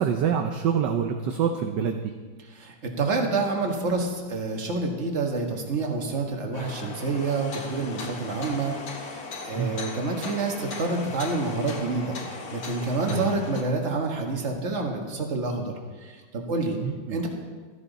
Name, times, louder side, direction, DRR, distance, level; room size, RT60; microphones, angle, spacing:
voice 1, 0.0-2.0 9.5-9.8 13.1-13.3 16.8-17.2, right 7 dB, 65° right, 5 dB, 1.2 m, -26 dB
voice 2, 2.4-15.7 16.0-16.8 17.1-17.3, right 3 dB, 35° right, 2 dB, 1.6 m, -28 dB
sound 1, 6.5-13.6, left 3 dB, 50° left, 1.5 m, -37 dB
14.0 x 13.0 x 4.0 m, 1.4 s
omnidirectional pair, 2.4 m